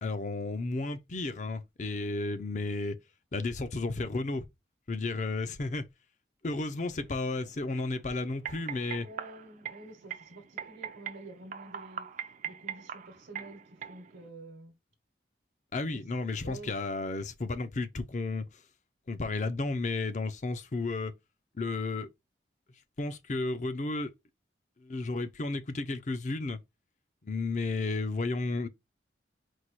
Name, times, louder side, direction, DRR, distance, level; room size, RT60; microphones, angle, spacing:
voice 1, 0.0-3.0 3.3-4.5 4.9-5.9 6.4-9.1 15.7-18.5 19.1-21.2 21.6-22.1 23.0-24.1 24.8-26.6 27.2-28.7, left 3 dB, 40° left, 0.5 m, -33 dB
sound 1, 6.6-14.3, right 8 dB, 40° right, 0.4 m, -43 dB
voice 2, 9.0-12.1 12.4-14.7 15.9-16.0 16.4-16.7, right 2 dB, 75° right, 1.0 m, -49 dB
4.6 x 2.2 x 4.1 m
head